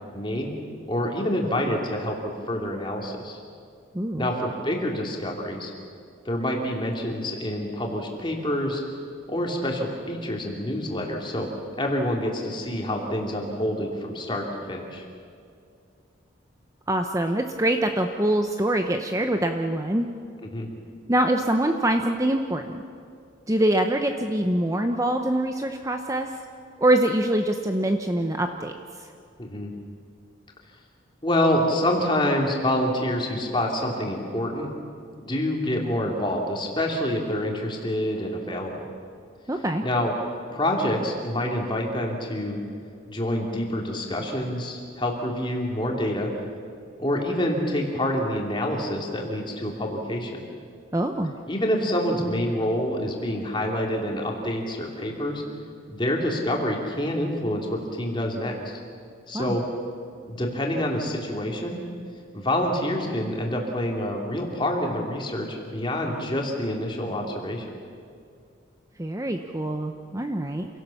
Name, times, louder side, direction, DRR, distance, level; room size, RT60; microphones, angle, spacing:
voice 1, 0.1-0.5 0.9-2.2 2.5-3.4 4.2-5.7 6.2-8.8 9.3-11.5 11.8-15.0 20.5-20.7 29.4-29.7 31.2-34.7 35.2-38.9 39.8-40.1 40.5-42.6 43.1-46.3 47.0-50.4 51.5-55.4 55.9-58.8 59.3-59.6 60.3-61.8 62.3-67.6, left 1 dB, 25° left, 0 dB, 3.0 m, -27 dB
voice 2, 3.9-4.3 16.9-20.1 21.1-22.8 23.5-26.3 26.8-28.7 39.5-39.8 50.9-51.3 59.3-59.6 69.0-70.7, right 1 dB, 15° right, 5 dB, 0.8 m, -24 dB
28.0 x 17.5 x 7.2 m, 2.3 s
head